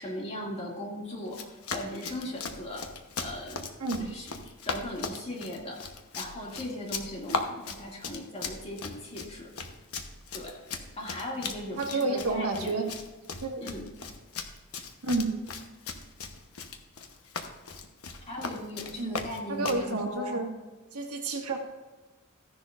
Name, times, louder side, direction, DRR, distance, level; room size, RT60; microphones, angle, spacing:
voice 1, 0.0-2.9 3.2-3.6 4.0-4.3 4.6-5.9 6.1-9.5 10.3-10.7 11.0-12.8 13.6-13.9 18.3-20.4, left 1 dB, 30° left, -2 dB, 2.3 m, -38 dB
Run, 1.3-19.9, left 4 dB, 70° left, 1.0 m, -38 dB
voice 2, 11.8-12.9 13.4-13.6 15.0-15.4 19.0-19.1 19.5-20.5 20.9-21.6, right 3 dB, 80° right, 2 dB, 1.6 m, -30 dB
14.5 x 10.5 x 2.5 m, 1.2 s
head